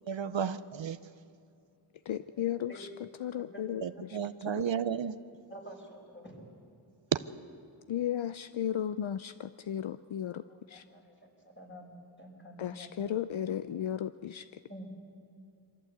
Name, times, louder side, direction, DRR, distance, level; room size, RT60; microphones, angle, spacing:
voice 1, 0.1-1.0 3.8-5.2, right 7 dB, 65° right, 13 dB, 0.7 m, -33 dB
voice 2, 2.0-4.2 4.5-4.7 7.9-10.9 12.6-14.6, left 10 dB, 70° left, 13 dB, 0.6 m, -35 dB
voice 3, 5.5-6.4 10.5-11.1 11.4-11.9 12.2-13.2 14.7-14.8, equal, 25° left, 0 dB, 5.7 m, -49 dB
23.5 x 15.0 x 8.0 m, 2.5 s
cardioid pair, 40°, 50 cm